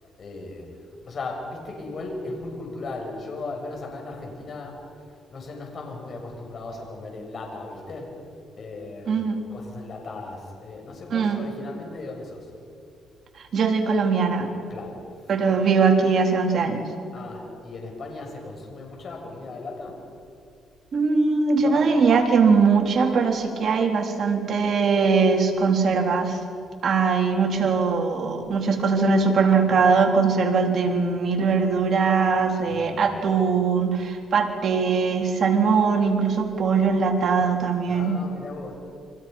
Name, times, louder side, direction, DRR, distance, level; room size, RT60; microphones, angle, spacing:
voice 1, 0.2-8.2 8.6-9.2 9.5-12.5 14.7-15.4 17.1-20.0 21.6-22.1 26.8-26.9 32.7-33.1 37.9-38.7, left 3 dB, 50° left, 1 dB, 7.1 m, -37 dB
voice 2, 9.1-9.4 11.1-11.4 13.4-14.5 15.3-16.8 20.9-26.4 26.8-38.2, right 5 dB, 55° right, 2 dB, 3.6 m, -21 dB
29.5 x 25.0 x 5.6 m, 2.5 s
cardioid pair, 90°, 0 cm